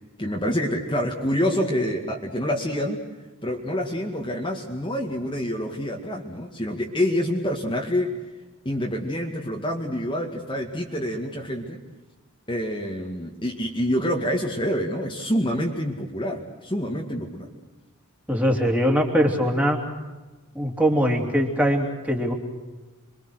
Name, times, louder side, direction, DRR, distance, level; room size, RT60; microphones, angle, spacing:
voice 1, 0.2-3.0 3.4-8.1 8.7-11.8 12.5-17.5, equal, 20° left, 0 dB, 2.1 m, -27 dB
voice 2, 18.3-19.8 20.6-22.3, equal, 5° right, 1 dB, 3.3 m, -22 dB
28.0 x 24.0 x 6.5 m, 1.2 s
head